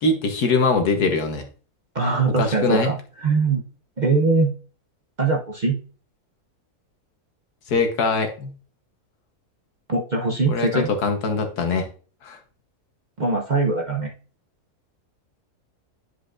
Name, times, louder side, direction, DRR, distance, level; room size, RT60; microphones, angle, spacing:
voice 1, 0.0-1.5 2.4-2.9 7.7-8.5 10.5-11.9 12.2-12.4, left 3 dB, 85° left, 5 dB, 1.7 m, -22 dB
voice 2, 1.9-3.0 3.2-3.6 4.0-4.5 5.2-5.8 9.9-10.9 13.2-14.1, right 3 dB, 40° right, 1 dB, 0.7 m, -21 dB
9.8 x 5.0 x 2.5 m, 0.39 s
omnidirectional pair, 1.6 m